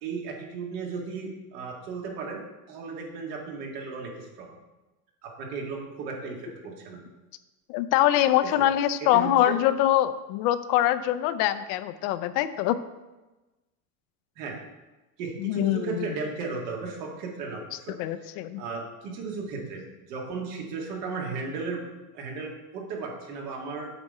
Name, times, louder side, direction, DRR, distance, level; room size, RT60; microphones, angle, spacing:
voice 1, 0.0-2.4 2.7-4.5 5.2-7.0 8.4-8.7 9.0-9.6 14.4-14.6 15.2-17.9 18.2-18.3 18.6-21.8 22.1-23.9, right 4 dB, 80° right, 0 dB, 1.9 m, -35 dB
voice 2, 7.7-12.8 15.4-16.1 18.0-18.6, left 13 dB, 65° left, 12 dB, 0.6 m, -24 dB
8.0 x 3.5 x 5.4 m, 1.1 s
supercardioid pair, 100°, 47 cm